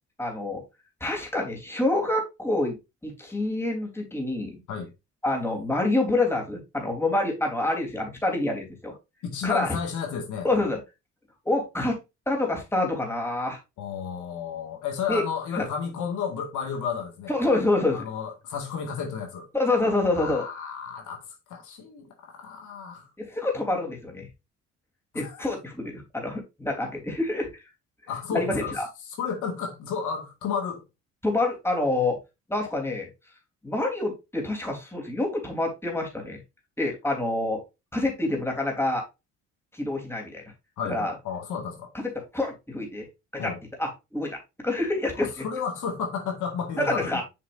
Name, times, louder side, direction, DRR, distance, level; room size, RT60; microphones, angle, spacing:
voice 1, 0.2-0.6 1.0-2.7 3.0-4.6 5.2-8.9 9.4-9.7 10.4-10.8 11.4-12.0 12.3-13.6 15.1-15.2 15.6-15.7 17.3-18.0 19.5-20.5 23.2-24.3 25.1-27.5 28.3-28.9 31.2-32.2 32.5-33.1 33.6-36.4 36.8-37.6 37.9-39.0 39.7-40.4 40.9-41.1 41.9-43.1 43.3-43.5 43.8-44.3 44.6-45.4 46.8-47.2, left 2 dB, 10° left, 3.4 m, -27 dB
voice 2, 9.2-10.5 13.8-17.3 17.9-19.5 20.1-23.1 25.1-25.5 28.1-30.8 40.8-41.9 43.4-43.6 45.2-47.2, left 6 dB, 80° left, 2.0 m, -32 dB
7.6 x 6.0 x 2.6 m
cardioid pair, 90°, 30 cm